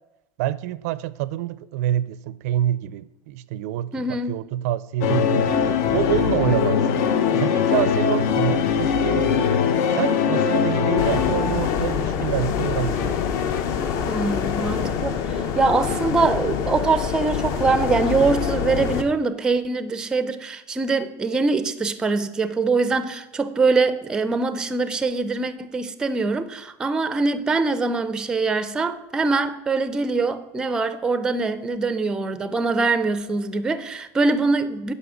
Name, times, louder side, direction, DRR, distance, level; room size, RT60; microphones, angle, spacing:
voice 1, 0.4-5.5 5.9-7.0 7.3-9.5 9.9-13.1, right 13 dB, 85° right, 0.5 m, -26 dB
voice 2, 3.9-4.3 14.1-34.9, right 3 dB, 10° right, 0.4 m, -23 dB
sound 1, 5.0-13.6, left 7 dB, 70° left, 0.9 m, -22 dB
sound 2, 11.0-19.0, left 7 dB, 45° left, 0.7 m, -26 dB
9.8 x 5.5 x 7.1 m
cardioid pair, 175°, 8 cm